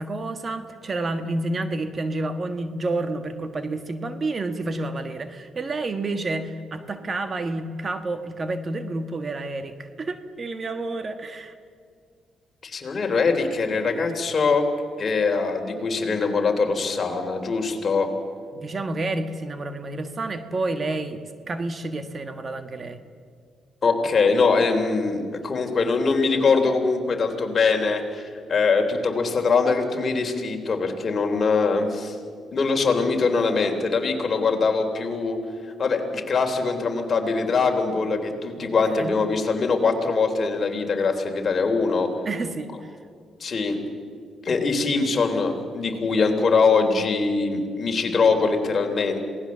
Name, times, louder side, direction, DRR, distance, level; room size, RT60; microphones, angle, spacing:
voice 1, 0.0-11.5 18.5-23.0 38.6-39.1 42.2-42.9, right 2 dB, 35° right, 9 dB, 1.4 m, -29 dB
voice 2, 12.6-14.6 15.0-18.1 23.8-32.1 32.5-35.4 35.8-42.1 43.4-43.8 44.4-49.2, left 4 dB, 40° left, 3 dB, 3.4 m, -22 dB
27.0 x 18.5 x 7.4 m, 2.1 s
cardioid pair, 90°, 0 cm